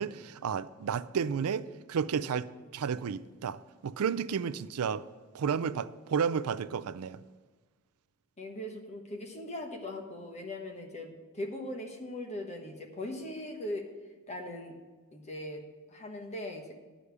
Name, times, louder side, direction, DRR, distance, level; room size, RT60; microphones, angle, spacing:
voice 1, 0.0-5.1 5.3-7.2, right 6 dB, 70° right, 0.4 m, -32 dB
voice 2, 8.4-13.9 14.3-14.8 15.1-15.6 15.9-16.7, left 1 dB, 30° left, 1.2 m, -40 dB
11.0 x 5.1 x 8.2 m
head